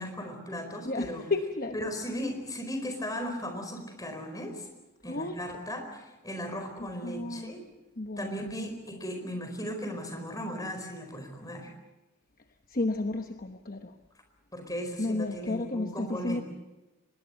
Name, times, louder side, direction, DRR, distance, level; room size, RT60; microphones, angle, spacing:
voice 1, 0.0-1.2 1.7-4.7 5.0-7.6 8.2-11.7 14.5-16.4, equal, 15° left, 5 dB, 4.5 m, -37 dB
voice 2, 0.8-1.9 5.0-5.6 6.8-7.5 8.0-8.7 12.7-14.0 15.0-16.4, left 2 dB, 40° left, 6 dB, 1.1 m, -33 dB
24.5 x 21.0 x 7.8 m, 1.1 s
head